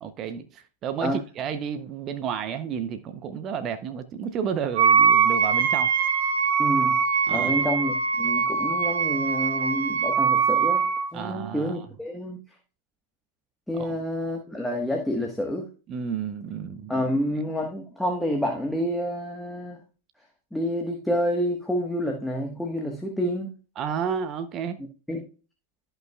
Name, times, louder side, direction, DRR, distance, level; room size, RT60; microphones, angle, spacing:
voice 1, 0.0-5.9 7.3-7.7 11.1-11.9 13.7-13.9 15.9-16.9 23.8-24.8, right 7 dB, 35° right, 0.6 m, -31 dB
Wind instrument woodwind instrument, 4.7-11.1, right 6 dB, 65° right, 1.1 m, -22 dB
voice 2, 6.6-7.0 7.3-10.8 11.1-12.4 13.7-15.7 16.9-19.8 20.5-23.5 25.1-25.3, equal, 5° left, 1.3 m, -28 dB
13.5 x 5.6 x 2.3 m
hypercardioid pair, 110°, 0 cm